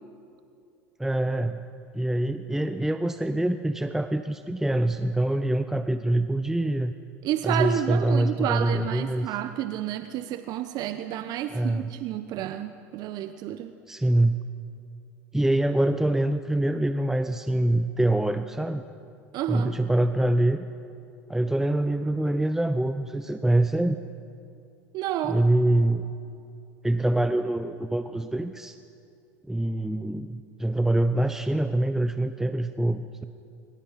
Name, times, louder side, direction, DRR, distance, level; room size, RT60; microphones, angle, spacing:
voice 1, 1.0-1.6 1.9-6.9 7.4-9.3 11.5-11.9 13.9-14.4 15.3-18.8 19.5-20.7 21.3-24.0 25.2-26.1 26.8-28.8 29.5-33.3, right 1 dB, 5° right, 9 dB, 0.8 m, -25 dB
voice 2, 7.2-13.7 19.3-19.7 24.9-25.4, right 11 dB, 55° right, 10 dB, 1.0 m, -30 dB
26.0 x 25.0 x 5.8 m, 2.5 s
hypercardioid pair, 80°, 8 cm